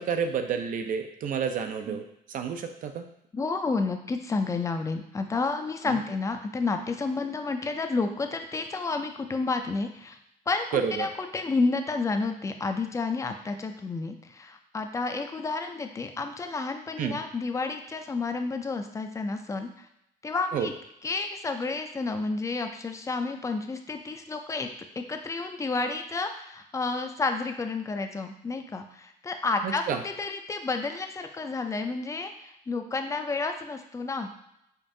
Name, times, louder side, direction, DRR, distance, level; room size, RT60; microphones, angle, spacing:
voice 1, 0.0-3.1 5.9-6.0 10.7-11.1 17.0-17.2 20.5-20.7 29.6-30.0, right 7 dB, 50° right, 7 dB, 0.5 m, -30 dB
voice 2, 3.3-10.2 10.5-19.9 20.2-20.7 21.0-24.7 25.0-34.3, left 3 dB, 20° left, 6 dB, 0.4 m, -30 dB
5.2 x 2.5 x 2.6 m, 0.79 s
cardioid pair, 110°, 17 cm